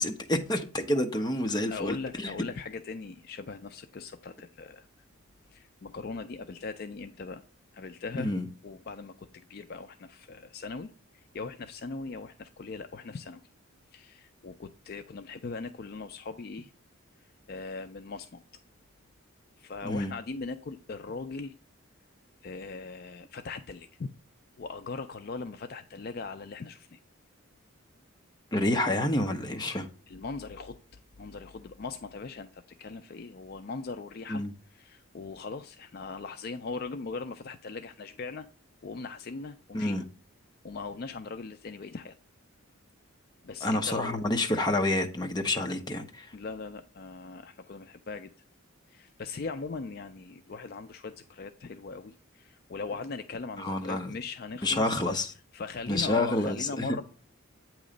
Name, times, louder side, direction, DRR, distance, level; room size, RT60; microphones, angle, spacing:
voice 1, 0.0-2.3 8.2-8.5 19.8-20.1 28.5-29.9 34.3-34.5 39.7-40.0 43.6-46.3 53.6-54.1 54.6-55.3 55.9-56.9, left 1 dB, 20° left, 0.7 m, -28 dB
voice 2, 1.7-4.9 5.5-7.4 7.7-8.4 8.6-13.4 13.9-16.7 17.5-18.4 19.6-21.5 22.4-24.1 24.6-27.0 30.1-30.8 31.2-34.4 34.7-38.5 38.8-40.0 40.6-42.1 43.4-44.3 46.3-48.3 48.9-55.1 55.5-57.0, left 4 dB, 45° left, 0.4 m, -39 dB
8.5 x 3.1 x 5.0 m
head